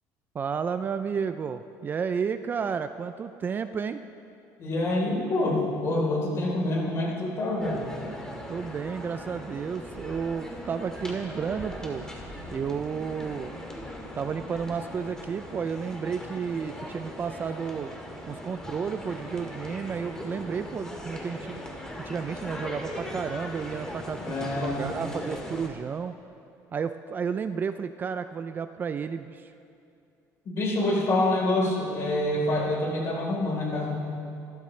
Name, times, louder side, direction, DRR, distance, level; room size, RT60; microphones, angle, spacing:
voice 1, 0.3-4.0 8.5-12.1 12.5-13.6 14.1-17.9 18.3-21.6 22.0-26.2 26.7-29.5, right 6 dB, 30° right, 10 dB, 0.4 m, -32 dB
voice 2, 4.6-8.0 24.2-25.0 30.5-34.0, left 1 dB, 40° left, -2 dB, 3.8 m, -26 dB
sound 1, 7.6-25.7, left 1 dB, 10° left, 2.1 m, -39 dB
28.0 x 13.0 x 3.3 m, 2.6 s
cardioid pair, 145°, 7 cm